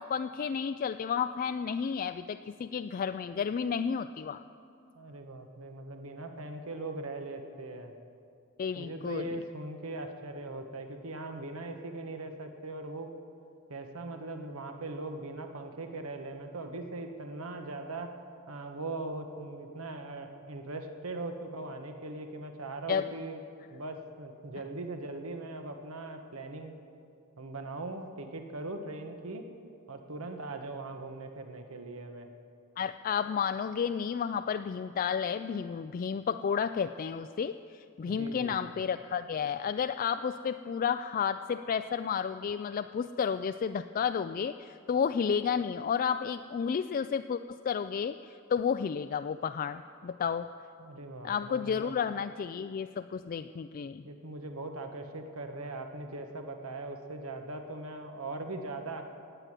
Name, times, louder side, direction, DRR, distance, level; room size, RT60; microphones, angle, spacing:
voice 1, 0.0-4.4 8.6-9.4 22.9-23.1 32.8-50.5 51.2-54.0, left 7 dB, 40° left, 9 dB, 0.3 m, -32 dB
voice 2, 4.9-7.9 8.7-13.1 13.7-18.1 18.5-23.4 23.7-26.8 27.4-29.5 29.9-32.3 38.1-38.8 50.8-52.0 54.0-59.0, right 2 dB, 80° right, 6 dB, 1.3 m, -40 dB
18.0 x 8.1 x 9.1 m, 2.4 s
head